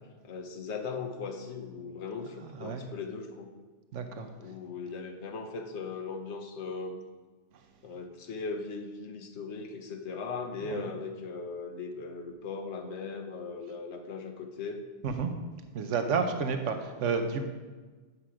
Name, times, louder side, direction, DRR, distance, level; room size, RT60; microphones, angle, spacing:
voice 1, 0.2-3.5 4.4-7.0 7.8-14.8, left 4 dB, 70° left, 4 dB, 1.2 m, -38 dB
voice 2, 2.4-2.9 3.9-4.3 10.7-10.9 15.0-15.3 15.7-17.5, right 5 dB, 85° right, 7 dB, 1.1 m, -31 dB
8.3 x 5.9 x 4.8 m, 1.3 s
omnidirectional pair, 1.2 m